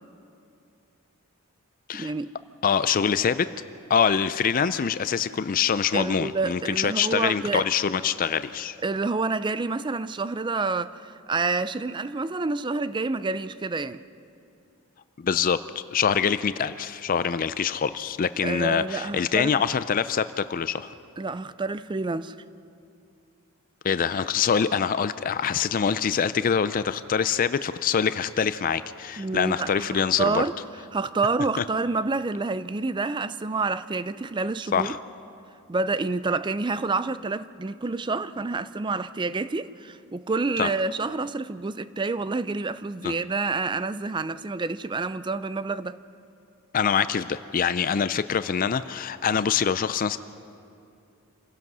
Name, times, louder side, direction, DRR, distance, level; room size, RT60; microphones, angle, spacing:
voice 1, 1.9-2.3 5.9-7.7 8.8-14.0 18.4-19.5 21.2-22.4 29.2-29.9 30.2-30.5 30.9-34.9 35.7-46.0, right 3 dB, 20° right, 0.4 m, -28 dB
voice 2, 2.6-3.5 3.9-8.8 15.2-15.6 15.9-20.9 23.8-30.4 31.6-31.7 34.7-35.0 40.6-40.7 43.0-43.2 46.7-50.2, left 7 dB, 40° left, 0.4 m, -24 dB
27.0 x 16.5 x 6.1 m
head